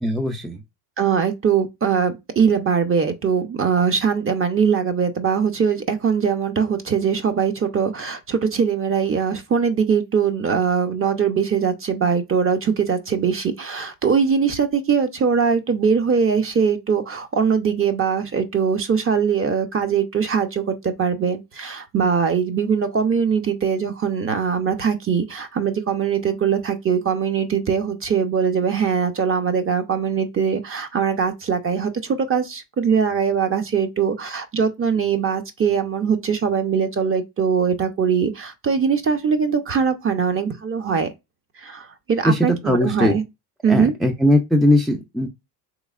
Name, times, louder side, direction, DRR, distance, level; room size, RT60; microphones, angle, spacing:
voice 1, 0.0-0.6 42.2-43.2 43.7-45.3, left 1 dB, ahead, 0.4 m, -19 dB
voice 2, 1.0-41.1 41.6-43.2 43.6-43.9, right 6 dB, 25° right, 0.7 m, -21 dB
3.5 x 3.1 x 2.4 m
supercardioid pair, 85°, 48 cm